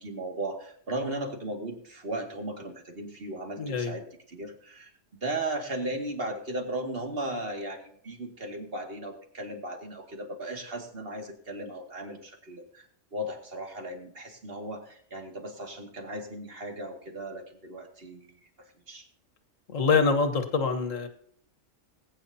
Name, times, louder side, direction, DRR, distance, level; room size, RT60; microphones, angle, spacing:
voice 1, 0.0-4.9 5.2-12.9 13.1-18.3 18.6-19.1, right 1 dB, 50° right, 3 dB, 2.5 m, -36 dB
voice 2, 3.6-4.0 19.7-21.1, left 4 dB, 85° left, 8 dB, 1.8 m, -25 dB
20.0 x 9.7 x 2.8 m, 0.63 s
omnidirectional pair, 1.3 m